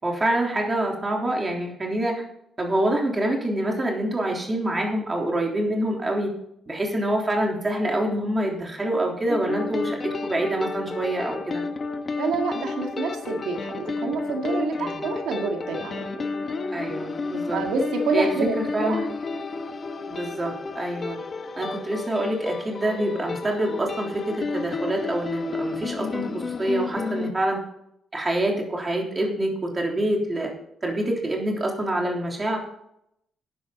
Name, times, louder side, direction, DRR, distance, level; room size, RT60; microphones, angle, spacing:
voice 1, 0.0-2.2 2.6-6.3 6.7-11.6 14.8-15.0 16.7-17.6 18.1-19.0 20.1-21.2 21.6-27.6 28.1-30.5 30.8-32.6, right 1 dB, 20° right, 0 dB, 3.5 m, -26 dB
sound 1, 9.3-27.3, left 3 dB, 35° left, 1.3 m, -31 dB
voice 2, 12.2-16.2 17.5-19.0, right 4 dB, 85° right, 3 dB, 2.0 m, -28 dB
12.5 x 10.0 x 4.0 m, 0.74 s
cardioid pair, 130°, 0 cm